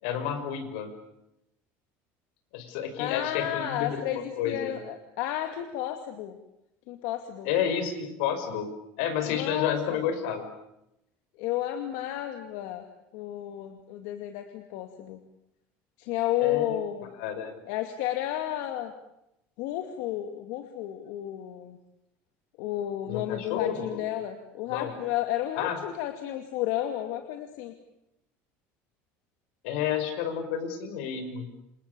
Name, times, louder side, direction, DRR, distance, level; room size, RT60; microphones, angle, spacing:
voice 1, 0.0-0.9 2.5-4.8 7.4-8.7 9.0-10.5 16.4-16.8 17.2-17.6 23.1-24.0 24.7-24.9 25.5-25.8 29.6-31.5, left 8 dB, 85° left, 9 dB, 5.9 m, -30 dB
voice 2, 3.0-6.4 6.9-7.5 9.3-10.0 11.4-12.8 13.1-15.2 16.0-17.1 17.6-18.9 19.6-21.8 22.6-27.7, left 12 dB, 70° left, 6 dB, 2.4 m, -32 dB
29.0 x 27.5 x 7.0 m, 0.85 s
cardioid pair, 175°, 6 cm